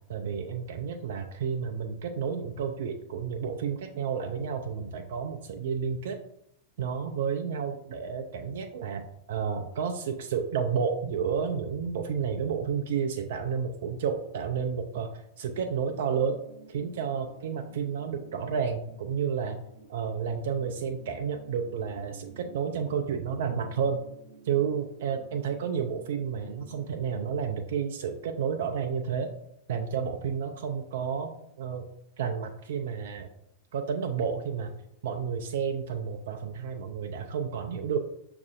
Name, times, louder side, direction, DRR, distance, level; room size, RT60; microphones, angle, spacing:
voice 1, 0.1-6.2 6.8-16.4 16.7-19.6 19.9-24.0 24.4-29.3 29.7-31.8 32.2-33.3 33.7-34.7 35.0-38.0, right 6 dB, 60° right, 5 dB, 0.3 m, -31 dB
sound 1, 15.5-27.4, right 4 dB, 80° right, 0.8 m, -53 dB
6.1 x 2.5 x 2.5 m, 0.77 s
figure-of-eight pair, 90°, 0 cm